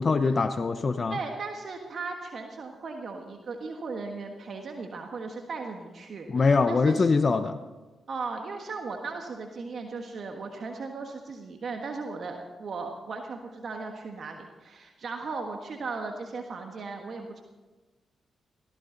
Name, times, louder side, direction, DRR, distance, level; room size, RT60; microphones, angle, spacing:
voice 1, 0.0-1.2 6.3-7.6, left 4 dB, 50° left, 10 dB, 0.8 m, -23 dB
voice 2, 1.1-7.1 8.1-17.4, right 4 dB, 65° right, 3 dB, 1.5 m, -37 dB
17.5 x 15.0 x 4.0 m, 1.2 s
supercardioid pair, 45°, 0 cm